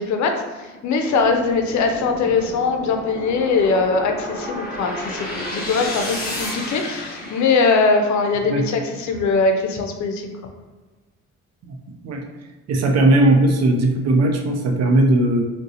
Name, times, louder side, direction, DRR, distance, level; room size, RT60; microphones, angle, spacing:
voice 1, 0.0-10.3, left 4 dB, 70° left, 4 dB, 0.5 m, -21 dB
sound 1, 1.1-8.4, left 1 dB, 30° left, 1.3 m, -32 dB
voice 2, 11.7-12.3 12.7-15.4, right 2 dB, 60° right, 3 dB, 0.6 m, -18 dB
3.7 x 2.2 x 2.7 m, 1.2 s
cardioid pair, 90°, 30 cm